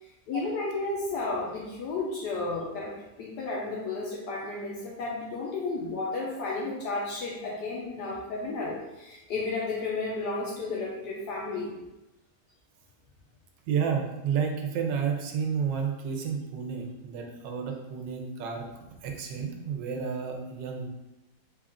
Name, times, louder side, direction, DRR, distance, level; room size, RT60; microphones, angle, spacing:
voice 1, 0.3-11.7, left 3 dB, 75° left, -3 dB, 1.1 m, -33 dB
voice 2, 13.7-18.7 19.0-20.9, right 6 dB, 80° right, 3 dB, 1.3 m, -31 dB
3.8 x 2.4 x 3.5 m, 0.98 s
omnidirectional pair, 2.0 m